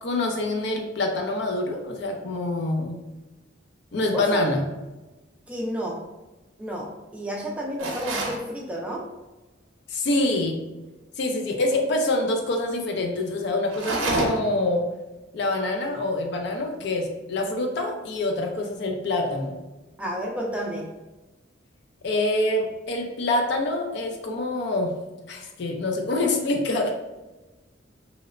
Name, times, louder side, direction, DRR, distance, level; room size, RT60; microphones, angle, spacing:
voice 1, 0.0-3.0 3.9-4.7 9.9-10.6 11.2-14.8 15.3-19.6 22.0-24.9 25.3-26.9, left 2 dB, 60° left, 3 dB, 0.4 m, -26 dB
voice 2, 4.1-4.5 5.5-6.0 6.6-9.0 20.0-20.9, equal, 5° right, -2 dB, 0.3 m, -31 dB
sound 1, 7.8-8.4 13.7-14.6, right 2 dB, 80° right, 0.5 m, -27 dB
2.9 x 2.0 x 2.4 m, 1.1 s
head